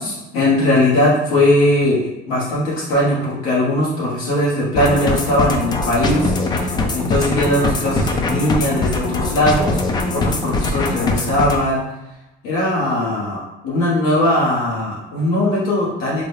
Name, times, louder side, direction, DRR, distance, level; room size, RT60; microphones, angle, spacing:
voice 1, 0.0-11.8 12.4-16.3, left 1 dB, 90° left, -7 dB, 1.4 m, -19 dB
sound 1, 4.7-11.6, left 2 dB, 20° left, 0.4 m, -21 dB
3.7 x 2.2 x 3.3 m, 0.93 s
cardioid pair, 120°, 21 cm